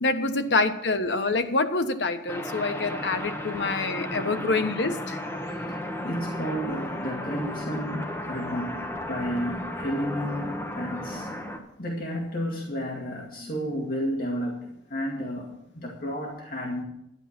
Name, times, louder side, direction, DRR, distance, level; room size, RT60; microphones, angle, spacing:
voice 1, 0.0-5.2, left 3 dB, 85° left, 8 dB, 1.1 m, -26 dB
sound 1, 2.3-11.6, left 1 dB, 15° left, 1.4 m, -34 dB
voice 2, 6.0-11.3 11.8-16.8, equal, 55° left, -1 dB, 2.2 m, -32 dB
12.0 x 10.5 x 5.9 m, 0.79 s
head